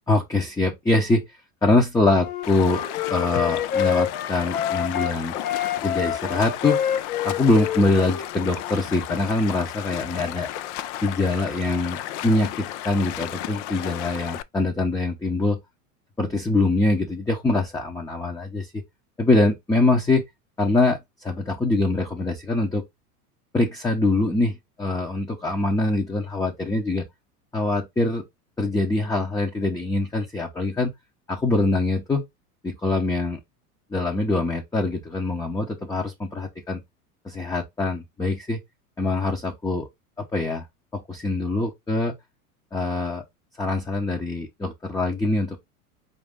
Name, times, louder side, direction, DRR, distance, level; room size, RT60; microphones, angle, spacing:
voice 1, 0.1-1.2 1.6-2.8 3.1-5.3 5.8-6.8 7.2-10.5 11.0-15.6 16.2-18.8 19.2-20.2 20.6-22.8 23.5-27.0 27.5-28.2 28.6-30.9 31.3-32.2 32.6-33.4 33.9-36.8 37.2-38.6 39.0-39.9 40.2-40.6 40.9-42.1 42.7-43.2 43.6-45.6, left 2 dB, 10° left, 0.7 m, -23 dB
Wind instrument woodwind instrument, 2.2-5.1 5.4-8.8, left 9 dB, 65° left, 1.1 m, -27 dB
Stream, 2.4-14.4, left 13 dB, 50° left, 0.5 m, -34 dB
4.9 x 2.6 x 3.5 m
hypercardioid pair, 90°, 46 cm